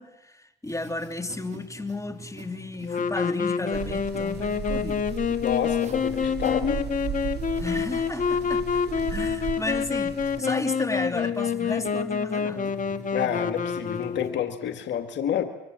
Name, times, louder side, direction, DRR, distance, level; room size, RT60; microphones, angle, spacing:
voice 1, 0.0-5.1 7.6-8.6 9.1-12.7, left 2 dB, 15° left, 7 dB, 2.9 m, -33 dB
sound 1, 0.6-14.3, right 3 dB, 40° right, 4.3 m, -45 dB
Wind instrument woodwind instrument, 2.9-14.6, left 6 dB, 45° left, 1.7 m, -27 dB
sound 2, 3.7-10.4, right 9 dB, 60° right, 1.2 m, -36 dB
voice 2, 5.4-6.9 13.1-15.4, left 9 dB, 70° left, 7 dB, 2.0 m, -28 dB
27.0 x 24.5 x 7.5 m, 0.90 s
supercardioid pair, 65°, 19 cm